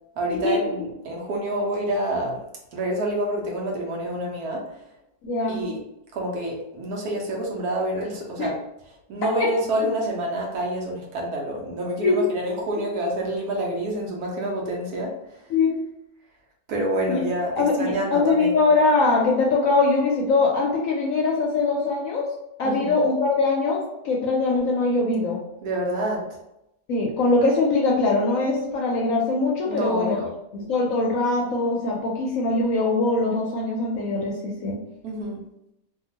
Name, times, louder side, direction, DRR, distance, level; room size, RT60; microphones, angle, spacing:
voice 1, 0.2-2.4 2.7-4.7 5.5-5.8 6.1-8.6 9.1-15.5 16.7-18.6 22.6-22.9 25.6-26.3 29.7-30.3 35.0-35.4, right 1 dB, 70° right, -1 dB, 1.1 m, -27 dB
voice 2, 5.2-5.6 8.4-8.5 9.4-9.5 12.0-12.3 15.5-15.8 17.1-17.2 17.6-22.3 22.6-23.8 24.0-25.4 26.9-30.2 30.5-34.8, left 3 dB, 70° left, -2 dB, 0.8 m, -22 dB
2.8 x 2.3 x 2.8 m, 0.83 s
omnidirectional pair, 1.8 m